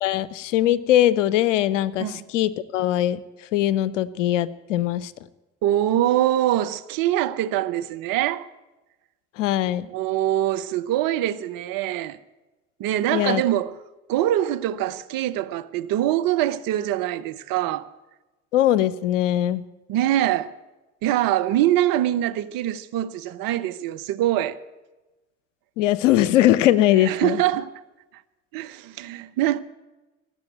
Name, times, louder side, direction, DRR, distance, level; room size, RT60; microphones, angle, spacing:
voice 1, 0.0-3.2 3.5-5.1 9.4-9.9 13.1-13.4 18.5-19.6 25.8-27.4, left 13 dB, 85° left, 0.6 m, -21 dB
voice 2, 5.6-8.4 9.9-12.2 12.8-13.8 14.1-17.9 19.9-20.5 21.0-24.6 27.0-27.7 28.5-29.6, right 13 dB, 70° right, 0.8 m, -23 dB
18.5 x 7.5 x 9.0 m
hypercardioid pair, 45°, 36 cm